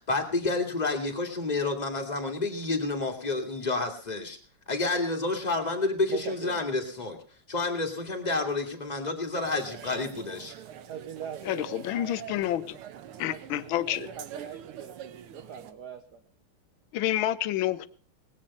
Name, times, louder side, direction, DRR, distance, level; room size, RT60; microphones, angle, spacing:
voice 1, 0.0-4.4 4.7-7.2 7.5-10.5, left 3 dB, 20° left, 3 dB, 2.2 m, -29 dB
voice 2, 6.1-6.6 10.7-12.2 13.3-16.2, right 7 dB, 55° right, 6 dB, 1.4 m, -42 dB
sound 1, 9.4-15.7, right 10 dB, 85° right, 1.9 m, -45 dB
voice 3, 11.4-12.8 13.2-14.1 16.9-17.9, left 13 dB, 70° left, 13 dB, 1.5 m, -29 dB
19.5 x 8.5 x 5.4 m, 0.44 s
omnidirectional pair, 2.4 m